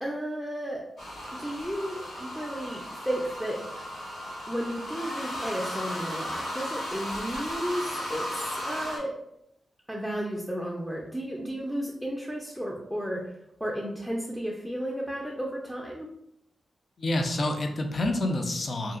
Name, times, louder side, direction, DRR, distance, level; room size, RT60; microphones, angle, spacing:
voice 1, 0.0-0.8 1.4-3.6 4.5-9.1 9.9-16.1, equal, ahead, -2 dB, 0.4 m, -33 dB
sound 1, 1.0-9.0, equal, 70° left, 1.3 m, -35 dB
voice 2, 17.0-19.0, left 1 dB, 55° left, 4 dB, 0.4 m, -28 dB
2.7 x 2.3 x 2.4 m, 0.79 s
cardioid pair, 55°, 0 cm